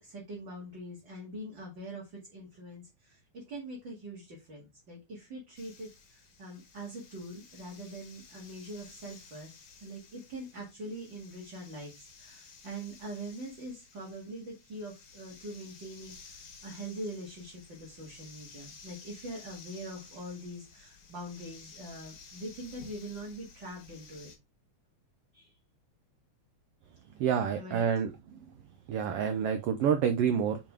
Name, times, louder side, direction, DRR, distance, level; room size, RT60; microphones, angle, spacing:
voice 1, 0.0-9.5 9.8-24.3 25.3-25.5 27.5-27.9, right 1 dB, 40° right, 2.6 m, -43 dB
sound 1, 5.6-24.4, left 5 dB, 75° left, 3.5 m, -54 dB
voice 2, 27.2-28.1 28.9-30.6, right 7 dB, 75° right, 1.4 m, -28 dB
7.0 x 5.0 x 3.5 m
omnidirectional pair, 3.4 m